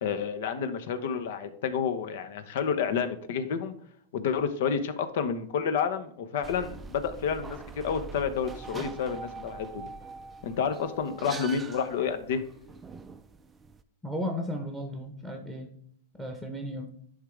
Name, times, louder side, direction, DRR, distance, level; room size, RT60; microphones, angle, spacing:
voice 1, 0.0-3.7 4.1-9.9 10.4-12.4, left 6 dB, 65° left, 10 dB, 1.0 m, -30 dB
sound 1, 6.4-13.8, right 4 dB, 15° right, 0.4 m, -43 dB
voice 2, 14.0-15.7 16.2-16.9, equal, 5° left, 4 dB, 1.1 m, -34 dB
11.0 x 3.7 x 3.3 m, 0.65 s
supercardioid pair, 145°, 0 cm